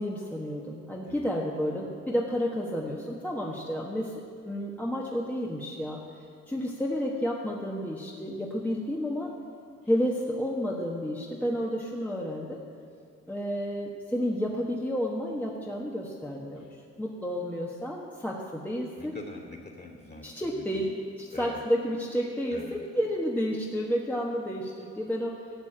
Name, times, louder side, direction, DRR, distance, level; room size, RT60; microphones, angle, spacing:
voice 1, 0.0-4.1 4.4-6.0 6.5-9.3 9.9-12.6 13.3-19.2 20.2-20.9 21.2-25.4, equal, 5° left, -3 dB, 1.3 m, -31 dB
voice 2, 19.0-20.8 21.3-21.6 22.5-22.8, left 2 dB, 35° left, 2 dB, 2.9 m, -44 dB
13.5 x 6.9 x 9.0 m, 2.5 s
cardioid pair, 90°, 30 cm